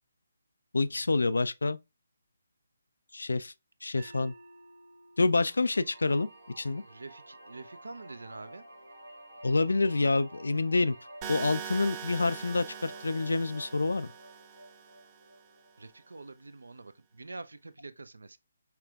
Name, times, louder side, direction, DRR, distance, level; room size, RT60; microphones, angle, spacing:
voice 1, 0.7-1.8 3.1-3.5 3.8-4.3 5.2-6.3 6.6-6.8 9.4-11.0 11.3-14.1, left 3 dB, 70° left, 0.3 m, -27 dB
sound 1, 4.0-10.1, right 2 dB, 45° right, 1.5 m, -58 dB
sound 2, 5.2-16.3, right 1 dB, 85° right, 1.7 m, -51 dB
voice 2, 6.8-8.6 15.8-18.4, right 3 dB, 70° right, 0.5 m, -46 dB
sound 3, 11.2-15.2, right 8 dB, 20° right, 0.7 m, -42 dB
5.8 x 3.3 x 2.3 m
figure-of-eight pair, 145°, 0 cm